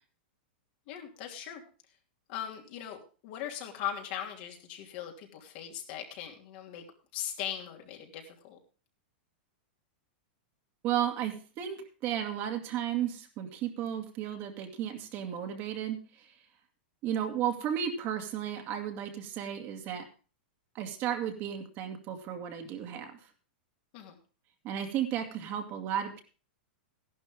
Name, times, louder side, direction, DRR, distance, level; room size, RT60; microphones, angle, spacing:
voice 1, 0.9-1.6 2.3-6.8 7.1-8.6 23.9-24.2, left 10 dB, 55° left, 2 dB, 2.8 m, -39 dB
voice 2, 10.8-16.3 17.0-20.0 20.7-23.2 24.6-26.2, right 10 dB, 40° right, 5 dB, 2.2 m, -34 dB
14.0 x 11.5 x 3.6 m, 0.36 s
hypercardioid pair, 125°, 6 cm